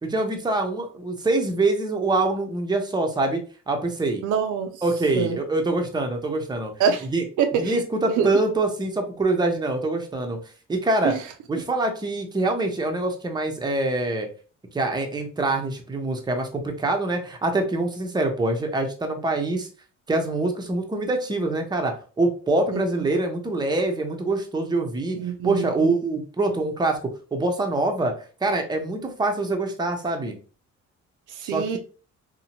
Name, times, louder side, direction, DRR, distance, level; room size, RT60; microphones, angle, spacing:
voice 1, 0.0-3.4 3.7-4.2 4.8-6.7 7.1-7.2 7.5-10.4 10.7-11.1 11.5-14.3 14.7-19.7 20.1-25.2 25.4-28.1 28.4-30.4 31.4-31.8, right 2 dB, 15° right, 0.6 m, -24 dB
voice 2, 4.2-4.8 5.1-5.4 6.8-7.1 7.4-7.8 8.2-8.3 11.0-11.2 22.7-22.8 25.2-25.9 31.3-31.8, right 7 dB, 85° right, 0.5 m, -25 dB
2.7 x 2.1 x 2.8 m
cardioid pair, 90°, 30 cm